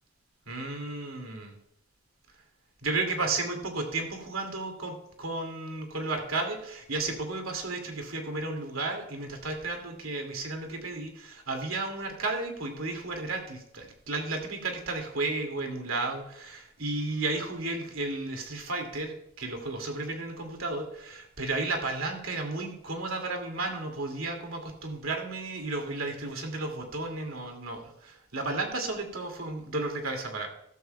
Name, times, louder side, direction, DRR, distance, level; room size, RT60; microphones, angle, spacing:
voice 1, 0.5-1.5 2.8-30.5, right 3 dB, 80° right, 3 dB, 2.4 m, -33 dB
13.5 x 13.0 x 2.3 m, 0.75 s
head